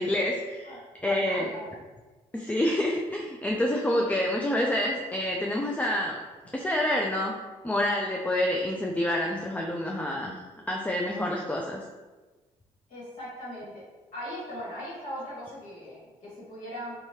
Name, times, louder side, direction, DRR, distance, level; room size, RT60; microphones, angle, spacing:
voice 1, 0.0-1.5 2.3-6.2 6.5-7.3 7.6-10.4 10.7-11.8, left 1 dB, 10° left, -1 dB, 0.3 m, -27 dB
voice 2, 1.2-1.7 12.9-13.8 14.1-16.9, equal, 60° left, -9 dB, 1.3 m, -39 dB
2.7 x 2.3 x 3.1 m, 1.3 s
supercardioid pair, 60°, 16 cm